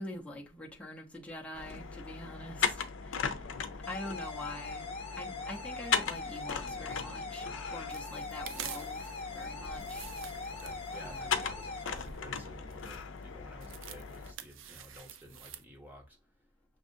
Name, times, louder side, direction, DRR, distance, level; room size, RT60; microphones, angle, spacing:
voice 1, 0.0-3.4 3.8-10.1 10.9-11.3, left 1 dB, 5° left, 0.8 m, -45 dB
sound 1, 1.5-14.3, left 6 dB, 85° left, 0.6 m, -38 dB
sound 2, 3.8-11.8, left 3 dB, 30° left, 1.0 m, -42 dB
sound 3, 7.9-15.6, right 8 dB, 90° right, 0.5 m, -49 dB
voice 2, 10.5-16.2, equal, 10° right, 1.1 m, -52 dB
6.2 x 2.4 x 2.6 m
head